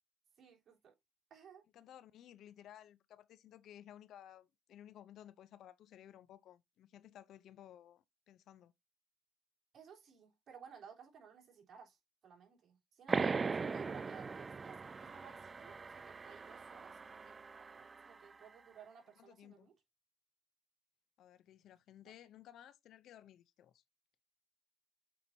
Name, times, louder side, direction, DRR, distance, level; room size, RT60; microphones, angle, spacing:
voice 1, 0.4-0.9 1.3-1.6 9.7-12.0 12.2-19.7 22.0-22.1, right 7 dB, 60° right, 3.4 m, -57 dB
voice 2, 1.7-8.7 19.2-19.7 21.2-23.8, left 11 dB, 80° left, 0.6 m, -57 dB
sound 1, 13.1-18.3, right 4 dB, 35° right, 0.3 m, -40 dB
8.4 x 4.4 x 2.7 m
cardioid pair, 90°, 0 cm